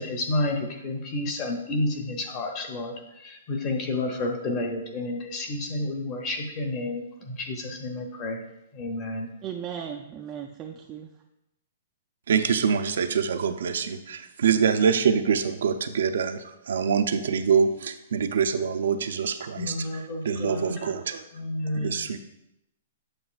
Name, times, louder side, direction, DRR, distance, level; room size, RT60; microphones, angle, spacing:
voice 1, 0.0-8.4 8.7-9.3 19.6-20.9 21.3-22.2, left 2 dB, 25° left, 3 dB, 0.8 m, -30 dB
voice 2, 9.4-11.1, right 8 dB, 20° right, 2 dB, 0.3 m, -36 dB
voice 3, 12.3-19.7 20.2-21.2 21.7-22.2, right 6 dB, 75° right, 8 dB, 0.5 m, -25 dB
7.7 x 6.8 x 2.4 m, 0.87 s
hypercardioid pair, 170°, 0 cm